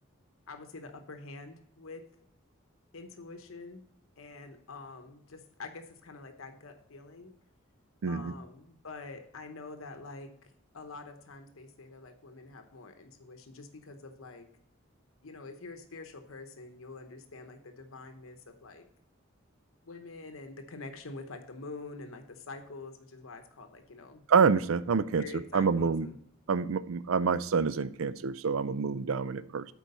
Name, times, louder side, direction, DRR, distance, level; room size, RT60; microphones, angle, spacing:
voice 1, 0.5-2.0 2.9-3.8 4.2-7.3 8.1-10.3 10.7-14.5 15.2-18.9 19.8-24.2 25.2-26.2, left 3 dB, 75° left, 6 dB, 0.9 m, -46 dB
voice 2, 8.0-8.3 24.3-25.3 25.5-26.1 26.5-29.7, right 5 dB, 75° right, 16 dB, 0.4 m, -27 dB
8.2 x 4.6 x 5.4 m, 0.71 s
head